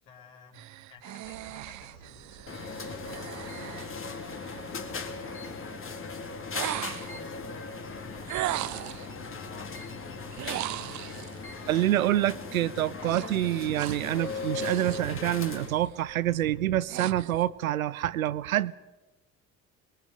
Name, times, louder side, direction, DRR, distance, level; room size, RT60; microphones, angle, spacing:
voice 1, 0.0-6.4 6.6-8.8 9.2-10.4, left 4 dB, 60° left, 4.9 m, -54 dB
sound 1, 0.5-4.8 6.5-7.3 8.3-9.1 10.3-11.4 13.0-15.1 15.5-15.9 16.4-17.5, right 14 dB, 45° right, 0.8 m, -38 dB
sound 2, 1.2-16.6, right 6 dB, 60° right, 1.7 m, -53 dB
sound 3, 2.5-15.7, left 4 dB, 30° left, 2.3 m, -38 dB
voice 2, 11.7-18.7, right 13 dB, 75° right, 0.7 m, -27 dB
26.5 x 22.0 x 5.2 m
figure-of-eight pair, 55°, 42 cm